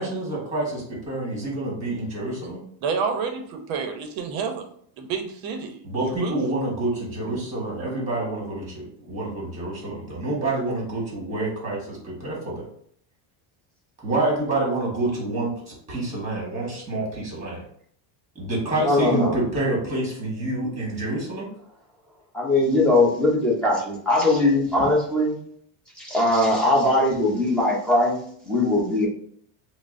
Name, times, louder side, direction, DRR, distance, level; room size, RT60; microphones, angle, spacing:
voice 1, 0.0-2.6 5.8-12.7 14.0-17.6 18.3-21.5, right 2 dB, 15° right, -3 dB, 1.3 m, -27 dB
voice 2, 2.8-4.6 5.0-5.7 6.1-6.4, right 5 dB, 45° right, 5 dB, 0.6 m, -29 dB
voice 3, 18.8-19.3 22.3-25.4 26.0-28.2 28.4-29.1, left 2 dB, ahead, -5 dB, 0.5 m, -20 dB
5.7 x 2.0 x 2.5 m, 0.62 s
cardioid pair, 165°, 49 cm